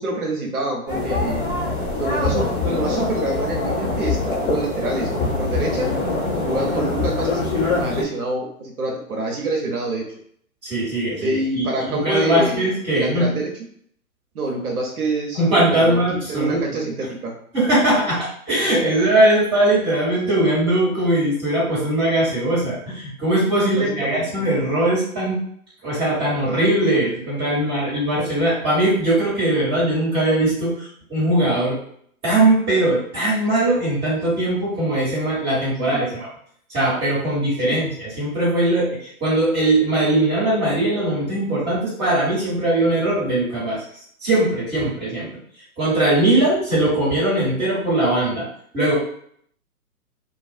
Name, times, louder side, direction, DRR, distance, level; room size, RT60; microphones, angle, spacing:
voice 1, 0.0-1.4 2.0-5.9 6.4-10.2 11.2-13.5 14.3-17.3 23.8-24.5 35.9-36.1 37.6-37.8, right 2 dB, 80° right, 0 dB, 0.8 m, -27 dB
sound 1, 0.9-8.0, left 3 dB, 20° left, 0.8 m, -23 dB
voice 2, 10.6-13.3 15.4-16.6 17.5-25.4 25.8-31.8 32.2-36.3 36.7-43.8 44.2-45.3 45.8-48.4 48.7-48.9, right 1 dB, 10° right, -8 dB, 1.3 m, -20 dB
2.3 x 2.2 x 2.6 m, 0.64 s
figure-of-eight pair, 130°, 44 cm